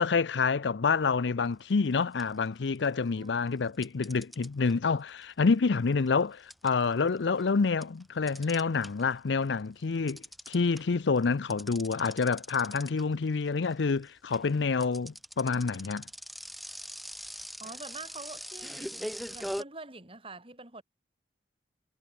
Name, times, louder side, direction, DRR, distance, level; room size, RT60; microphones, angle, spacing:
voice 1, 0.0-16.0, left 4 dB, 85° left, 0.6 m, -28 dB
sound 1, 1.6-1.9 2.2-3.1 3.8-9.2 9.5-19.6, equal, ahead, 3.8 m, -42 dB
voice 2, 3.2-3.8 17.6-20.8, right 3 dB, 30° right, 4.0 m, -46 dB
head